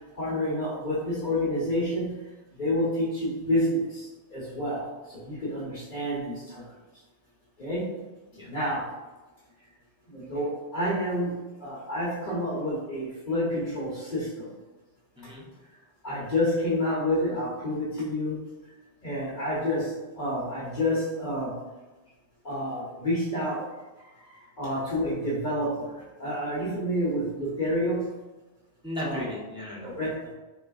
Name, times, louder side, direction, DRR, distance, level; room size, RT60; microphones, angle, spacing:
voice 1, 0.2-2.2 2.6-6.6 7.6-7.9 8.5-8.9 10.1-14.5 16.0-18.4 19.0-21.6 22.4-23.6 24.6-28.0 29.0-29.3 29.8-30.3, left 1 dB, 45° left, -7 dB, 0.9 m, -29 dB
voice 2, 15.1-15.5 24.0-24.5 28.8-29.9, left 1 dB, 5° right, -6 dB, 0.7 m, -37 dB
4.1 x 3.6 x 2.3 m, 1.2 s
omnidirectional pair, 1.2 m